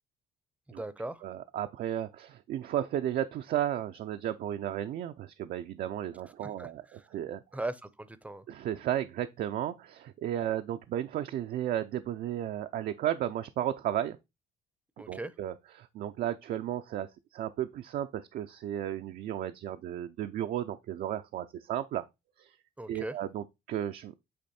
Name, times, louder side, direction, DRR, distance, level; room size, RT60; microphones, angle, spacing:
voice 1, 0.7-1.2 6.2-7.1 7.5-8.4 15.0-15.3 22.8-23.2, right 2 dB, 10° right, 0.6 m, -39 dB
voice 2, 1.2-7.4 8.5-14.2 15.1-22.0 22.4-22.6 22.9-24.3, right 11 dB, 60° right, 0.5 m, -34 dB
8.5 x 3.1 x 4.2 m
cardioid pair, 110°, 17 cm